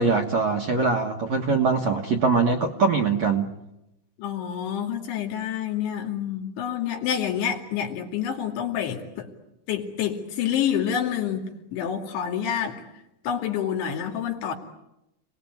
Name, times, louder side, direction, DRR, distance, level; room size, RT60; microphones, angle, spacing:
voice 1, 0.0-3.5, right 4 dB, 55° right, 5 dB, 2.1 m, -22 dB
voice 2, 4.2-9.3 9.7-12.8 13.2-14.5, left 9 dB, 80° left, 2 dB, 4.9 m, -28 dB
29.0 x 19.5 x 9.4 m, 0.90 s
omnidirectional pair, 5.2 m